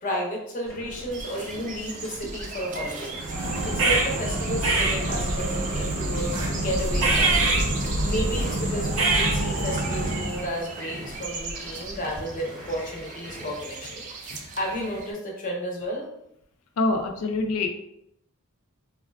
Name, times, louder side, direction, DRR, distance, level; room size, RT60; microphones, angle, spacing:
voice 1, 0.0-7.5 8.1-16.1, equal, 35° left, -1 dB, 0.7 m, -32 dB
sound 1, 0.6-13.6, right 1 dB, 5° left, 0.8 m, -43 dB
sound 2, 1.1-15.1, right 4 dB, 35° right, 0.3 m, -40 dB
sound 3, 3.2-10.5, right 2 dB, 75° right, 0.6 m, -25 dB
voice 2, 16.8-17.7, left 3 dB, 75° left, 4 dB, 0.4 m, -25 dB
3.5 x 2.2 x 2.2 m, 0.76 s
head